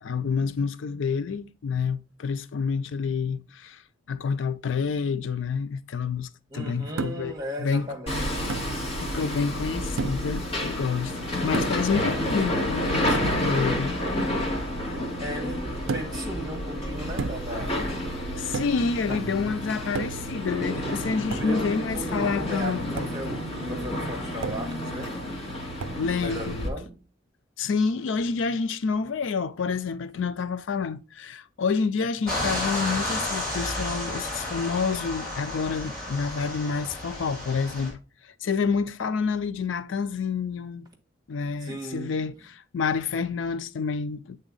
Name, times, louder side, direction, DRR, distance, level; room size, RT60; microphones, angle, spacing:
voice 1, 0.0-3.8 4.1-7.3 7.6-7.9 9.0-11.1 11.4-14.0 18.4-23.1 25.8-26.6 27.6-40.9 41.3-44.4, left 5 dB, 70° left, 0.4 m, -28 dB
voice 2, 6.5-8.6 15.2-17.9 19.1-19.6 21.3-25.2 26.2-27.0 41.6-42.2, equal, 20° right, 1.4 m, -37 dB
sound 1, 7.0-7.4 8.5-8.8 10.0-10.4 11.5-11.9 13.1-13.4 15.9-16.3 17.2-17.6 18.5-18.9 20.0-20.4 21.3-21.6 23.0-23.2 24.4-24.8 25.8-26.1, right 5 dB, 70° right, 0.4 m, -33 dB
Hammer, 8.1-26.7, left 1 dB, 30° left, 2.1 m, -30 dB
sound 2, 32.3-37.9, left 1 dB, 5° left, 3.6 m, -32 dB
8.1 x 3.9 x 3.9 m
head